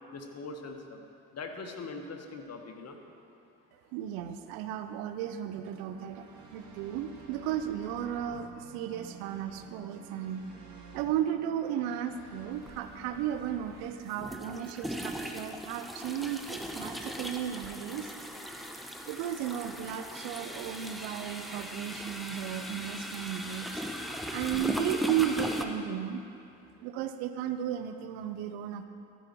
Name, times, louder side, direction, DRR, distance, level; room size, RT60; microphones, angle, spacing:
voice 1, 0.1-1.0 1.3-3.0, left 3 dB, 40° left, 4 dB, 1.3 m, -41 dB
voice 2, 3.9-6.2 6.5-10.4 10.9-18.1 19.1-23.8 24.3-26.2 26.8-28.9, right 10 dB, 65° right, 9 dB, 0.7 m, -34 dB
sound 1, 5.5-13.8, right 4 dB, 50° right, 1.9 m, -50 dB
sound 2, 12.6-12.7 14.1-25.6, equal, ahead, 0.9 m, -38 dB
14.0 x 5.5 x 6.0 m, 2.5 s
hypercardioid pair, 50°, 38 cm